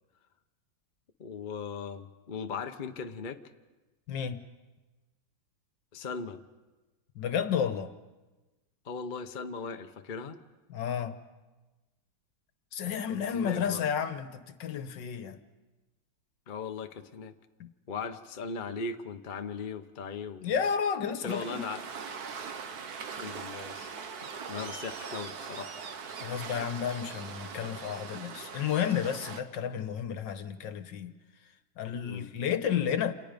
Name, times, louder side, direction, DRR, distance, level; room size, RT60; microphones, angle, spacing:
voice 1, 1.2-3.4 5.9-6.4 8.8-10.4 13.1-13.8 16.5-17.3 17.9-20.5 21.2-21.8 23.1-23.9 24.2-25.7 32.0-32.3, left 5 dB, 35° left, 0.8 m, -38 dB
voice 2, 4.1-4.5 7.2-7.9 10.7-11.2 12.7-15.4 17.6-17.7 20.4-21.6 26.2-31.1 31.8-33.1, left 8 dB, 70° left, 1.7 m, -31 dB
Waves surf, 21.3-29.4, right 6 dB, 55° right, 1.6 m, -41 dB
29.0 x 28.0 x 5.2 m
omnidirectional pair, 2.1 m